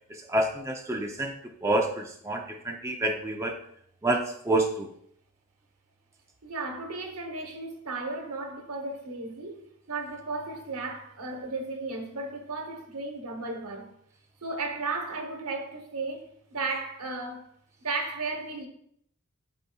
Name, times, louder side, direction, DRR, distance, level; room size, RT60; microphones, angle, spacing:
voice 1, 0.1-3.6 4.0-4.9, right 1 dB, 15° right, 0.5 m, -28 dB
voice 2, 6.4-13.9 14.4-17.5 17.8-18.7, right 3 dB, 85° right, 1.2 m, -35 dB
12.0 x 4.0 x 2.3 m
head